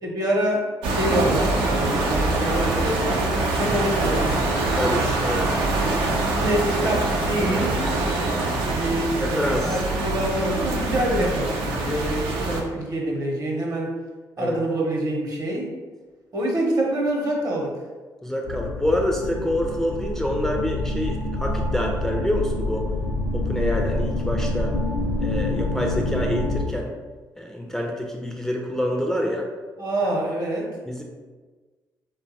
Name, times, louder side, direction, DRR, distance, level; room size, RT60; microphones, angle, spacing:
voice 1, 0.0-4.3 5.7-6.1 6.3-7.9 8.7-13.9 14.4-15.7 16.3-17.8 29.8-30.8, right 1 dB, 45° right, -1 dB, 0.8 m, -26 dB
sound 1, 0.8-12.6, right 2 dB, 80° right, 0.4 m, -24 dB
voice 2, 4.8-5.5 7.5-7.7 9.2-9.8 11.7-11.9 14.4-14.6 18.2-22.9 23.3-24.7 25.2-26.9 27.4-29.5 30.9-31.0, left 1 dB, 5° left, 0 dB, 0.4 m, -27 dB
sound 2, 18.5-26.6, left 1 dB, 60° left, 0.6 m, -26 dB
2.7 x 2.2 x 2.6 m, 1.4 s
supercardioid pair, 55°, 9 cm